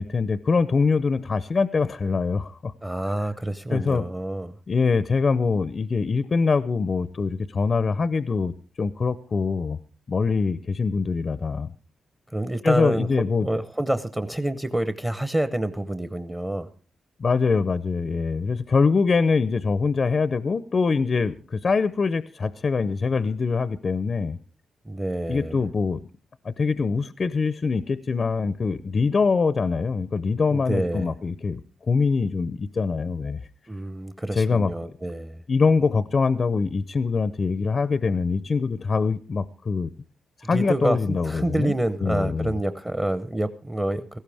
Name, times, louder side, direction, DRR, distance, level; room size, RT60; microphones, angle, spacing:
voice 1, 0.0-2.7 3.7-4.0 4.7-9.8 10.1-11.7 12.6-13.5 17.2-24.4 25.3-26.0 26.4-31.6 31.9-33.4 34.3-34.9 35.5-39.9 40.4-41.7 42.0-42.5, left 4 dB, 40° left, 14 dB, 0.5 m, -23 dB
voice 2, 2.8-4.5 12.3-13.1 13.4-16.7 24.9-25.6 30.5-31.1 33.7-35.4 40.5-44.2, right 1 dB, 15° right, 10 dB, 0.8 m, -27 dB
17.5 x 15.0 x 3.4 m, 0.39 s
cardioid pair, 105°, 0 cm